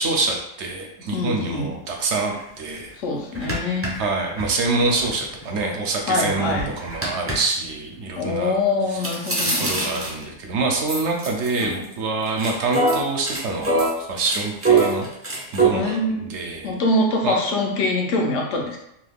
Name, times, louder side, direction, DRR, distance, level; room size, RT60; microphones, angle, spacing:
voice 1, 0.0-2.9 4.0-8.6 8.9-9.0 9.6-15.1 15.5-16.7 17.2-17.4, right 3 dB, 70° right, 1 dB, 0.9 m, -26 dB
voice 2, 1.1-1.7 3.0-3.9 6.1-6.8 8.2-10.1 11.6-11.9 15.7-16.3 16.6-18.8, left 2 dB, 80° left, 0 dB, 1.0 m, -24 dB
sound 1, 2.3-2.4 2.8-2.9 3.3-5.6 6.1-7.3 9.0-10.3 10.9-11.9 12.3-15.7, right 3 dB, 20° right, 0.4 m, -23 dB
2.8 x 2.3 x 3.4 m, 0.79 s
omnidirectional pair, 1.3 m